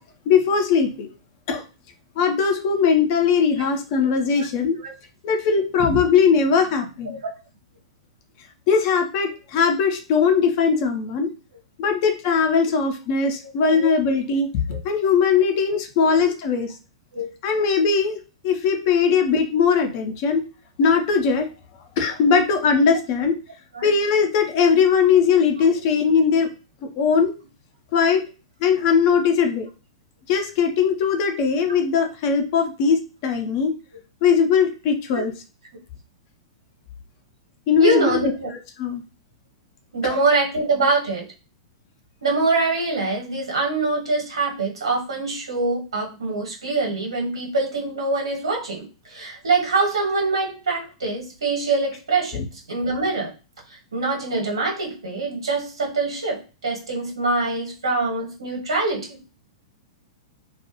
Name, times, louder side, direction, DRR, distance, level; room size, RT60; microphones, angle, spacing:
voice 1, 0.3-1.1 1.5-1.6 2.2-4.8 5.2-7.2 8.7-11.3 11.8-16.7 17.4-18.2 18.4-20.4 20.8-21.5 22.0-23.4 23.8-26.5 27.0-27.3 27.9-28.2 28.6-29.7 30.3-33.7 34.2-35.3 37.7-38.3 38.8-39.0 52.3-52.4, left 6 dB, 40° left, 4 dB, 0.6 m, -20 dB
voice 2, 37.8-38.5 39.9-41.3 42.2-52.4 52.7-53.3 53.7-59.2, right 3 dB, 70° right, 0 dB, 1.1 m, -24 dB
2.3 x 2.2 x 2.9 m, 0.33 s
figure-of-eight pair, 105°, 3 cm